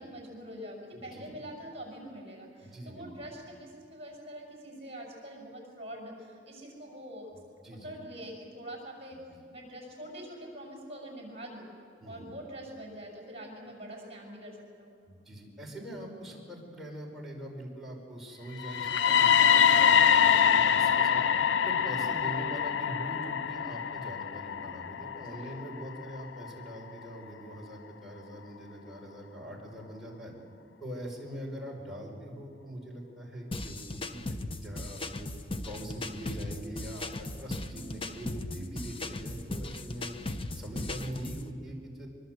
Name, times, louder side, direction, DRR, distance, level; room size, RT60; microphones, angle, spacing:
voice 1, 0.0-7.3 7.8-9.2 9.5-11.7 12.1-14.9 25.2-25.6 37.6-38.1, equal, 35° right, 0 dB, 6.5 m, -44 dB
voice 2, 0.9-1.4 2.6-3.1 7.3-7.9 9.1-9.2 12.0-12.3 15.0-19.9 20.1-21.2 21.6-30.3 30.8-33.8 34.1-35.3 35.6-40.2 40.5-42.1, equal, ahead, -3 dB, 5.4 m, -42 dB
sound 1, 18.6-26.5, left 8 dB, 90° left, 0.6 m, -25 dB
sound 2, 33.5-41.5, left 2 dB, 30° left, 1.0 m, -38 dB
24.0 x 23.5 x 8.0 m, 2.4 s
head